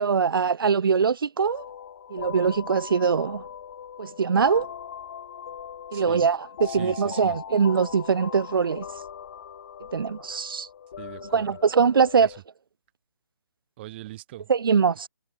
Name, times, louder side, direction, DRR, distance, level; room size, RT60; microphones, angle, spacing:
voice 1, 0.0-1.7 2.1-3.4 4.0-4.7 5.9-8.9 9.9-10.7 11.3-12.3 14.5-15.1, right 6 dB, 60° right, 0.7 m, -22 dB
sound 1, 1.4-12.4, left 8 dB, 40° left, 2.5 m, -40 dB
voice 2, 5.9-6.3 6.6-7.4 11.0-11.5 12.2-12.3 13.8-14.5, right 16 dB, 25° right, 3.3 m, -41 dB
figure-of-eight pair, 150°, 13 cm